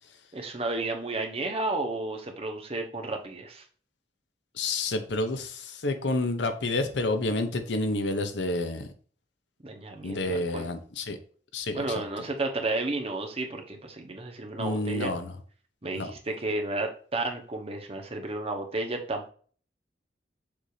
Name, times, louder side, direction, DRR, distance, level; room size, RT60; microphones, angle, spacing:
voice 1, 0.3-3.6 9.6-10.7 11.7-15.1 15.8-19.3, right 2 dB, 35° right, 4 dB, 1.0 m, -32 dB
voice 2, 4.6-8.9 10.0-11.2 11.5-11.8 14.6-15.3 15.9-16.1, left 2 dB, 85° left, 8 dB, 0.8 m, -29 dB
7.0 x 2.8 x 4.9 m, 0.44 s
head